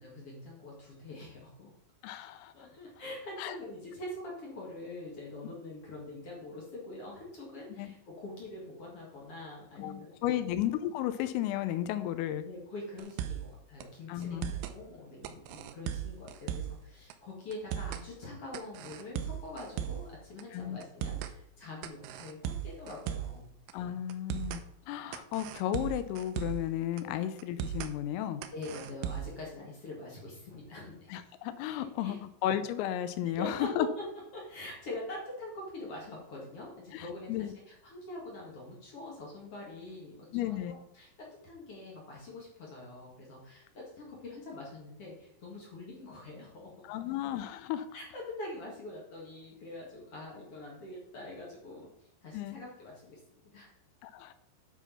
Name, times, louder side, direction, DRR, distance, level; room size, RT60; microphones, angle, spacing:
voice 1, 0.0-1.7 2.5-10.4 12.4-23.5 28.5-31.1 31.8-32.2 33.2-34.0 34.3-46.8 47.9-53.7, left 2 dB, 65° left, -3 dB, 1.4 m, -44 dB
voice 2, 2.0-2.5 3.4-3.6 7.8-7.9 9.8-12.5 14.1-14.5 20.5-20.8 23.7-28.4 31.1-32.2 32.4-33.9 36.9-37.0 37.3-37.5 40.3-40.7 46.8-47.9 52.3-52.6 54.0-54.3, left 12 dB, 85° left, 11 dB, 3.3 m, -33 dB
sound 1, 13.0-13.5 13.8-13.9 14.2-14.8 15.2-16.8 17.1-17.2 17.5-18.1 18.5-20.1 20.4-20.5 20.8-21.3 21.8-23.4 23.7-23.8 24.1-24.6 25.1-26.7 27.0-27.1 27.4-27.9 28.4-29.4, right 10 dB, 80° right, 3.0 m, -37 dB
9.8 x 4.7 x 5.7 m, 0.76 s
omnidirectional pair, 5.9 m